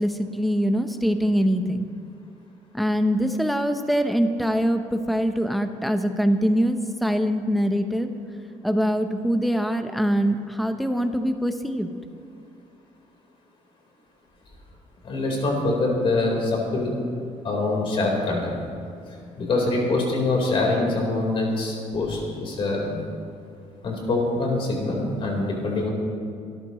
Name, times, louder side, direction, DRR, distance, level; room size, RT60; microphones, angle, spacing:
voice 1, 0.0-1.9 2.7-8.1 8.6-11.9, equal, ahead, 7 dB, 0.8 m, -23 dB
voice 2, 15.0-16.9 17.4-18.6 19.4-23.0 23.8-25.9, left 2 dB, 45° left, -1 dB, 4.1 m, -24 dB
26.0 x 13.5 x 3.1 m, 2.5 s
cardioid pair, 165°, 13 cm